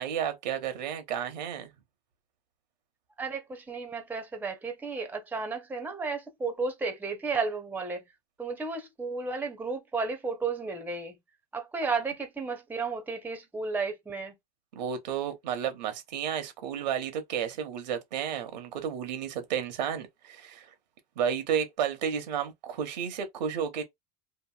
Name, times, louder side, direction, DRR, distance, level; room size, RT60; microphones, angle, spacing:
voice 1, 0.0-1.7 14.7-20.7 21.2-23.8, right 8 dB, 85° right, 0.9 m, -32 dB
voice 2, 3.2-8.0 8.4-11.1 11.5-14.3, right 4 dB, 10° right, 0.6 m, -33 dB
2.9 x 2.6 x 2.3 m
supercardioid pair, 110°, 21 cm